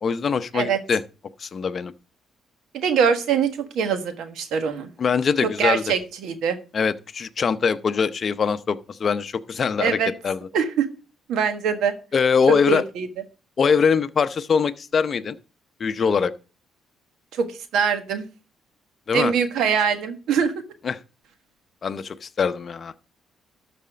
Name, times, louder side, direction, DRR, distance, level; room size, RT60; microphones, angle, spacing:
voice 1, 0.0-1.0 1.4-1.9 5.0-5.8 6.7-10.0 10.2-10.5 12.1-12.8 13.6-15.4 15.8-16.3 19.1-19.3 20.8-21.0 21.8-23.0, left 6 dB, 45° left, 0.7 m, -22 dB
voice 2, 2.7-3.5 3.7-4.9 5.4-6.6 9.8-10.1 10.5-10.9 11.3-11.9 12.5-13.1 17.3-17.5 17.7-18.3 19.1-20.5, right 6 dB, 80° right, 1.4 m, -23 dB
12.5 x 4.2 x 5.1 m
cardioid pair, 90°, 0 cm